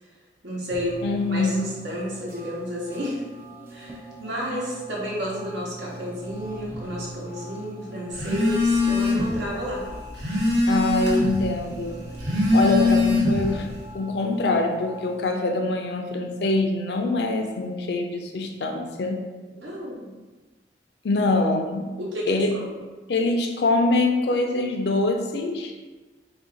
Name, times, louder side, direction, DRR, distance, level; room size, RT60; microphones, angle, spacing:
voice 1, 0.4-3.2 3.7-9.9 19.6-20.1 22.0-22.7, equal, 85° right, -4 dB, 1.0 m, -31 dB
sound 1, 0.7-15.3, right 1 dB, 15° right, 0.4 m, -42 dB
voice 2, 1.0-1.7 10.7-12.0 12.5-13.7 13.9-19.2 21.0-21.9 22.3-22.5 23.1-25.7, left 2 dB, 70° left, 3 dB, 0.4 m, -24 dB
Telephone, 8.1-9.4 9.8-11.4 12.1-13.6, left 2 dB, 65° right, 0.9 m, -22 dB
3.3 x 2.5 x 3.8 m, 1.3 s
head